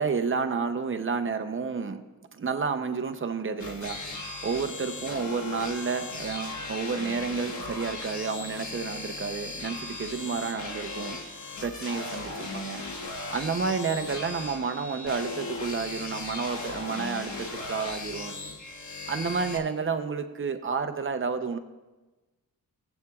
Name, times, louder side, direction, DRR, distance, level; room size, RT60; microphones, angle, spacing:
voice 1, 0.0-2.0 2.3-11.2 11.6-12.8 13.2-18.4 19.1-21.6, right 5 dB, 35° right, 7 dB, 0.7 m, -30 dB
sound 1, 3.6-19.6, left 3 dB, 55° left, 1.4 m, -37 dB
19.5 x 8.1 x 2.4 m, 1.2 s
wide cardioid pair, 130°, 35 cm